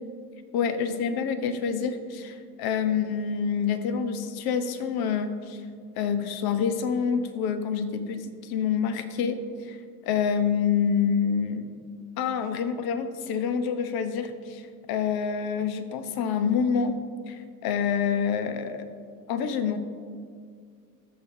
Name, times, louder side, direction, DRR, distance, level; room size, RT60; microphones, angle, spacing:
voice 1, 0.5-5.6 6.0-9.8 10.0-11.7 12.2-17.0 17.3-18.9 19.3-19.8, left 7 dB, 45° left, 9 dB, 1.0 m, -27 dB
19.0 x 6.9 x 2.8 m, 2.1 s
hypercardioid pair, 75°, 49 cm